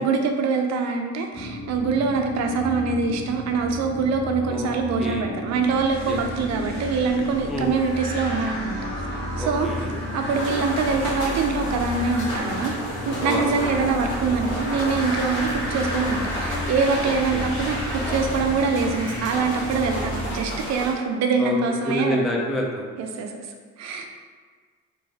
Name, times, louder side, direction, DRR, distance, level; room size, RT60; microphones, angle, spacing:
voice 1, 0.0-8.9 9.4-9.7 10.1-22.2 23.0-23.3 23.8-24.1, right 4 dB, 60° right, 4 dB, 0.5 m, -24 dB
sound 1, 1.3-20.3, left 2 dB, 50° left, 0.9 m, -34 dB
voice 2, 4.5-5.4 6.1-6.2 7.5-7.7 9.4-9.9 13.2-13.5 17.0-17.4 21.4-21.6 21.8-22.9, equal, ahead, -2 dB, 0.3 m, -28 dB
sound 2, 5.6-20.6, equal, 35° left, 1.3 m, -33 dB
sound 3, 10.3-20.9, equal, 85° left, 0.9 m, -34 dB
2.5 x 2.2 x 3.2 m, 1.6 s
cardioid pair, 90°, 30 cm